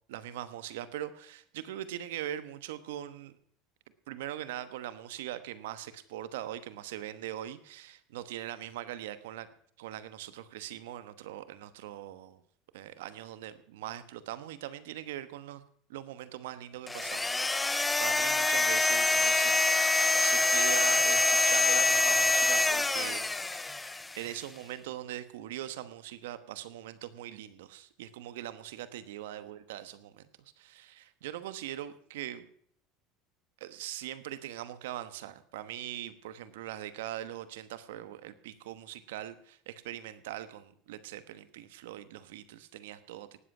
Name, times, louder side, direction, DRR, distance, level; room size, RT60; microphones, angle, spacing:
voice 1, 0.1-3.4 4.1-9.5 9.8-12.4 12.7-15.6 15.9-19.6 20.2-32.5 33.6-43.4, right 12 dB, 85° right, 13 dB, 1.1 m, -41 dB
sound 1, 16.9-24.2, left 2 dB, 10° left, 0.5 m, -26 dB
18.5 x 7.8 x 6.0 m, 0.63 s
supercardioid pair, 110°, 0 cm